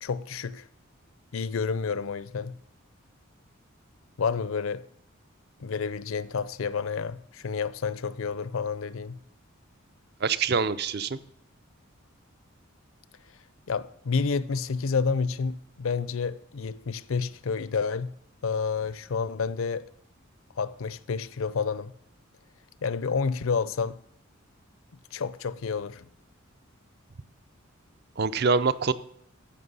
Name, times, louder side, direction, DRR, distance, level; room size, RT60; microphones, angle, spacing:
voice 1, 0.0-0.6 1.3-2.5 4.2-4.8 5.6-9.2 13.7-18.1 18.4-19.9 20.6-21.9 22.8-24.0 25.1-26.1, left 5 dB, 70° left, 0.5 m, -29 dB
voice 2, 10.2-11.2 28.2-28.9, right 5 dB, 50° right, 0.5 m, -25 dB
14.0 x 5.9 x 5.5 m
head